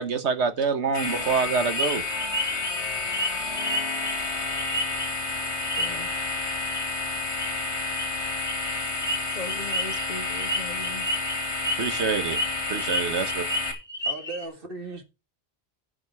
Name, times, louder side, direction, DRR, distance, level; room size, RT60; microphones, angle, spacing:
voice 1, 0.0-2.0 11.8-12.4 12.7-13.4, right 5 dB, 85° right, 1.5 m, -26 dB
sound 1, 0.9-13.7, left 3 dB, 80° left, 2.4 m, -30 dB
sound 2, 1.8-5.3 5.6-6.2 6.6-6.9 7.1-7.5 7.9-14.5, equal, 10° left, 2.0 m, -31 dB
voice 2, 5.8-6.1 9.4-11.1, left 2 dB, 45° left, 0.9 m, -38 dB
voice 3, 14.0-15.0, right 3 dB, 55° right, 2.0 m, -36 dB
15.5 x 5.2 x 4.7 m
omnidirectional pair, 1.1 m